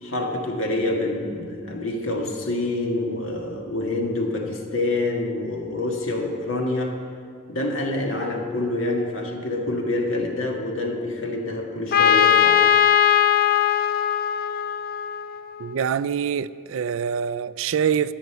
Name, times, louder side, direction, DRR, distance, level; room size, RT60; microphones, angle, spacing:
voice 1, 0.0-7.0 7.5-12.7, left 2 dB, 70° left, 1.8 m, -26 dB
Trumpet, 11.9-15.6, left 9 dB, 45° left, 0.4 m, -19 dB
voice 2, 15.6-18.1, right 7 dB, 65° right, 0.3 m, -25 dB
12.5 x 6.5 x 8.2 m
head